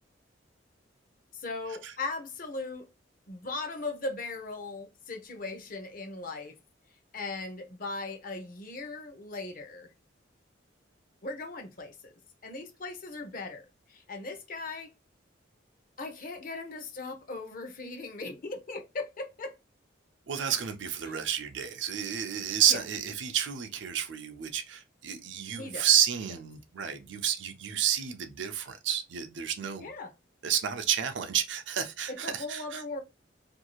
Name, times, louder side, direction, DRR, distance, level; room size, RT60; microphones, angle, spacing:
voice 1, 1.3-2.9 3.3-6.6 7.1-9.9 11.2-12.1 12.4-14.9 16.0-19.5 21.0-21.2 22.7-22.8 25.6-25.9 29.8-30.1 32.1-33.0, left 3 dB, 50° left, 0.6 m, -38 dB
voice 2, 20.3-29.9 30.4-32.8, right 9 dB, 70° right, 0.5 m, -30 dB
2.6 x 2.3 x 2.9 m
head